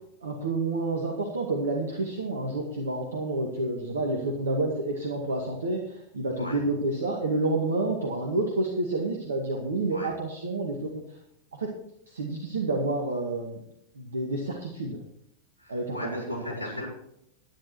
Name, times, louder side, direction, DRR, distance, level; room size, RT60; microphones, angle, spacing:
voice 1, 0.2-10.9 11.6-11.7 12.1-13.6 14.0-15.0 15.7-16.6, right 2 dB, 70° right, 0 dB, 2.2 m, -29 dB
voice 2, 15.6-16.9, left 1 dB, 85° right, -3 dB, 5.1 m, -37 dB
11.5 x 10.5 x 4.6 m, 0.77 s
figure-of-eight pair, 90°, 0 cm